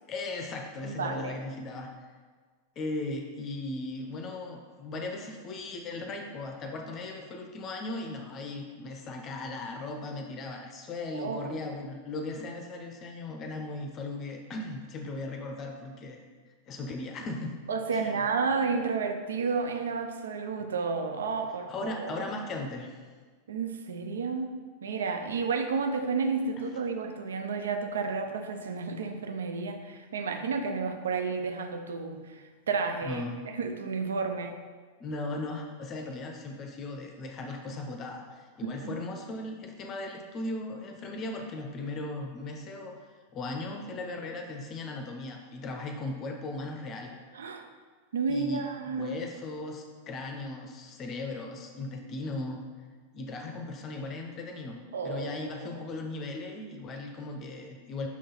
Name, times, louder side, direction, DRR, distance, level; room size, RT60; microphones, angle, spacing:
voice 1, 0.1-1.9 2.8-16.2 16.7-17.5 17.9-18.2 21.7-22.9 33.0-33.4 35.0-43.0 43.3-47.1 48.3-52.6 53.1-54.8 55.0-58.1, left 2 dB, 30° left, 4 dB, 0.6 m, -37 dB
voice 2, 0.8-1.4 11.1-11.6 17.7-22.3 23.5-24.5 24.8-34.6 38.6-39.1 47.3-47.7 48.1-49.2 54.9-55.5, right 4 dB, 65° right, 6 dB, 0.4 m, -31 dB
6.1 x 3.8 x 4.0 m, 1.5 s
figure-of-eight pair, 90°, 0 cm